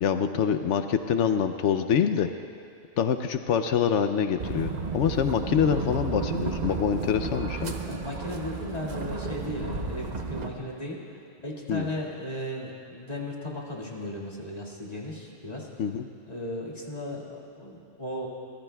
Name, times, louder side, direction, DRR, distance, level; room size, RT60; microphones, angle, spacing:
voice 1, 0.0-2.3 3.0-7.7 11.7-11.9 15.8-16.1, left 7 dB, 75° left, 8 dB, 0.9 m, -25 dB
sound 1, 4.4-10.5, right 4 dB, 40° right, 0.8 m, -33 dB
voice 2, 7.9-11.0 11.4-15.7 16.3-18.3, left 1 dB, 35° left, -4 dB, 2.1 m, -36 dB
24.5 x 19.0 x 2.3 m, 2.4 s
omnidirectional pair, 1.2 m